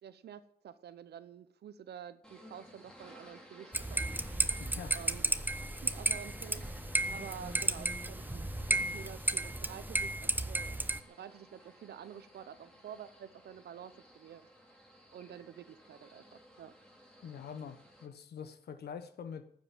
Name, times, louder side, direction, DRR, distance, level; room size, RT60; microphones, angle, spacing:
voice 1, 0.0-4.6 4.9-5.3 5.8-6.7 7.1-10.8 11.1-14.4 15.1-16.7, right 9 dB, 85° right, 14 dB, 0.8 m, -49 dB
sound 1, 2.2-18.1, equal, 5° left, 3.4 m, -55 dB
sound 2, 3.7-11.0, right 1 dB, 10° right, 0.9 m, -33 dB
voice 2, 4.6-5.0 17.2-19.5, left 7 dB, 80° left, 11 dB, 1.2 m, -45 dB
13.5 x 7.9 x 8.9 m, 0.70 s
cardioid pair, 60°, 16 cm